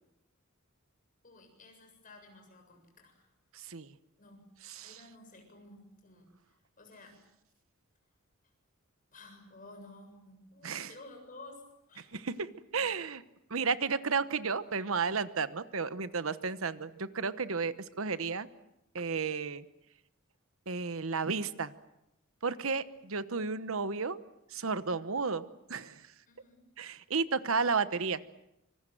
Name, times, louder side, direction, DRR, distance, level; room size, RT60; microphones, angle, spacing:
voice 1, 1.2-3.3 4.2-4.5 4.8-6.3 6.8-7.2 9.1-12.1 26.3-26.7, left 2 dB, 40° left, 3 dB, 7.5 m, -53 dB
voice 2, 3.5-3.9 4.7-5.0 10.6-10.9 12.1-13.2 13.5-18.5 18.9-19.6 20.7-21.7 22.4-24.2 24.5-25.4 25.7-26.0 26.8-28.2, right 5 dB, 70° right, 13 dB, 1.1 m, -33 dB
26.0 x 25.5 x 7.8 m, 0.84 s
head